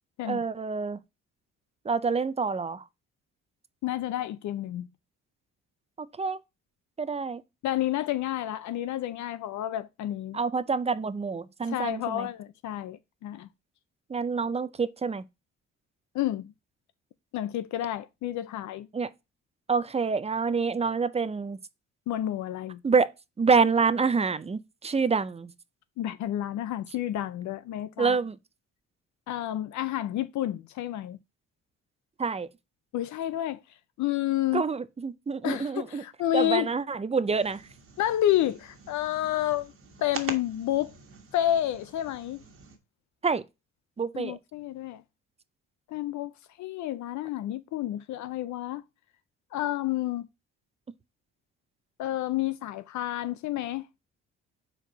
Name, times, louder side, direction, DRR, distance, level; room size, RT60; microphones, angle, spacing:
voice 1, 0.3-1.0 1.8-2.8 6.0-6.4 7.0-7.4 10.3-12.3 14.1-15.2 18.9-19.1 19.7-21.6 22.8-23.1 23.4-25.5 28.0-28.4 32.2-32.5 34.5-36.0 36.3-37.6 43.2-43.4 44.0-44.4, right 5 dB, 20° right, 0.5 m, -27 dB
voice 2, 3.8-4.9 7.6-10.4 11.6-13.5 16.1-16.5 17.3-18.9 22.1-22.8 26.0-28.2 29.3-31.2 32.9-33.6 34.0-34.6 35.4-36.7 38.0-39.7 40.0-40.9 41.3-42.4 44.1-45.0 45.9-46.3 46.6-48.8 49.5-50.3 52.0-53.9, left 13 dB, 70° left, 0.5 m, -30 dB
sound 1, 37.3-42.8, right 5 dB, 45° right, 1.5 m, -44 dB
4.6 x 4.4 x 5.1 m
cardioid pair, 90°, 30 cm